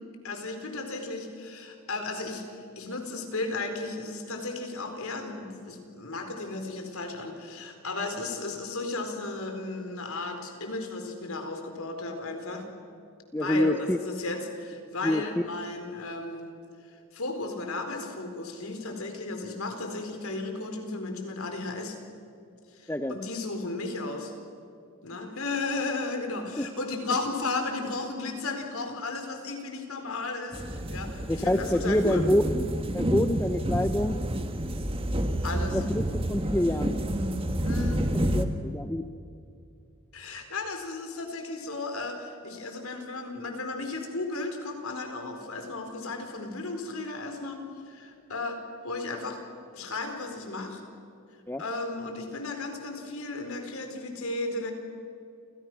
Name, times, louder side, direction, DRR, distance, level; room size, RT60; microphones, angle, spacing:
voice 1, 0.2-2.4 2.8-12.7 13.4-16.5 17.1-22.0 22.7-24.3 25.0-32.2 35.4-35.8 37.6-38.1 40.1-49.4 49.7-50.8 51.6-54.7, left 3 dB, 75° left, 5 dB, 4.4 m, -34 dB
voice 2, 13.3-14.0 15.0-15.2 22.9-23.2 26.6-26.7 31.2-32.7 32.9-34.2 35.7-37.0 38.1-39.0 51.5-51.6, left 1 dB, 10° left, 9 dB, 0.7 m, -26 dB
sound 1, 30.5-38.4, equal, 25° right, 1.6 m, -29 dB
29.5 x 28.0 x 6.2 m, 2.6 s
head